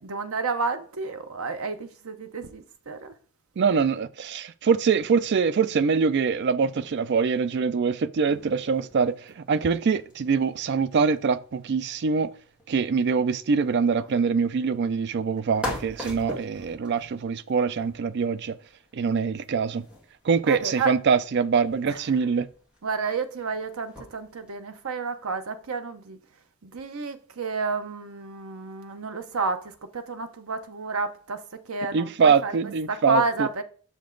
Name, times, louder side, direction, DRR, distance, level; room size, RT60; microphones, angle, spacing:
voice 1, 0.0-3.1 20.5-20.9 21.9-22.0 22.8-26.2 26.6-32.6 32.9-33.6, right 4 dB, 70° right, 0.8 m, -30 dB
voice 2, 3.6-12.3 12.7-18.5 18.9-19.9 20.2-22.5 31.9-33.5, right 5 dB, 50° right, 0.4 m, -24 dB
sound 1, 8.3-24.6, left 1 dB, 5° right, 1.9 m, -44 dB
6.7 x 5.2 x 3.8 m
head